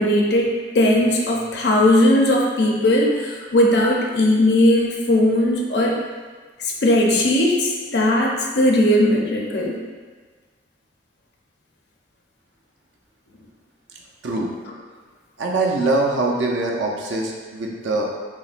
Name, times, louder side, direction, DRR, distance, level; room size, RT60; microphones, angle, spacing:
voice 1, 0.0-5.9 6.6-9.8, left 1 dB, 60° left, -1 dB, 0.5 m, -18 dB
voice 2, 15.4-18.1, right 2 dB, 80° right, -1 dB, 0.5 m, -23 dB
5.7 x 2.1 x 2.5 m, 1.4 s
head